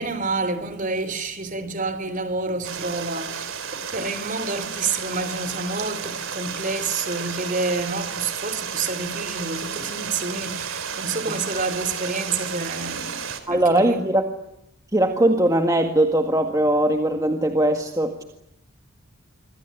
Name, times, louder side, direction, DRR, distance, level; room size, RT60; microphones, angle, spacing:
voice 1, 0.0-14.1, right 3 dB, 40° right, 3.5 m, -28 dB
Stream, 2.6-13.4, right 7 dB, 65° right, 3.9 m, -32 dB
voice 2, 13.5-14.2 14.9-18.2, right 1 dB, 15° right, 1.8 m, -20 dB
26.5 x 26.0 x 8.4 m
head